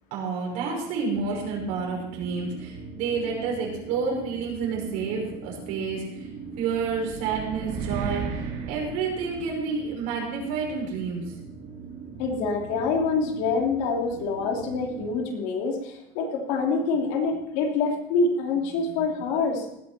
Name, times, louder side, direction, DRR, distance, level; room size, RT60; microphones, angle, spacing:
voice 1, 0.1-6.3 6.6-11.3 18.9-19.0, right 5 dB, 70° right, -1 dB, 5.8 m, -29 dB
sound 1, 1.1-15.1, right 5 dB, 40° right, 2.2 m, -41 dB
sound 2, 6.5-9.9, right 6 dB, 55° right, 2.5 m, -34 dB
voice 2, 12.2-19.7, left 4 dB, 85° left, 1 dB, 3.1 m, -26 dB
18.0 x 9.8 x 4.4 m, 0.82 s
cardioid pair, 170°, 16 cm